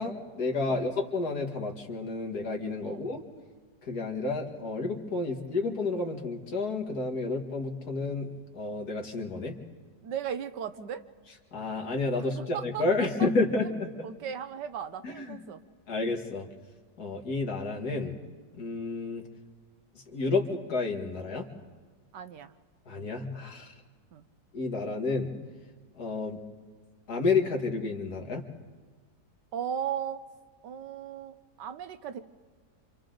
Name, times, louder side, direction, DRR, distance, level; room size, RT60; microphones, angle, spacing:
voice 1, 0.0-3.2 3.8-8.3 8.5-9.6 11.5-13.9 15.0-15.4 15.9-16.5 17.0-18.1 18.6-19.2 20.1-21.4 22.9-23.7 24.5-25.3 26.0-26.4 27.1-28.4, left 3 dB, 65° left, 2 dB, 2.5 m, -30 dB
voice 2, 10.0-11.0 12.4-12.8 13.2-13.3 14.0-15.6 22.1-22.5 24.1-24.2 29.5-30.2 30.6-32.2, right 8 dB, 85° right, 11 dB, 1.5 m, -36 dB
28.0 x 26.5 x 3.9 m, 1.5 s
omnidirectional pair, 1.8 m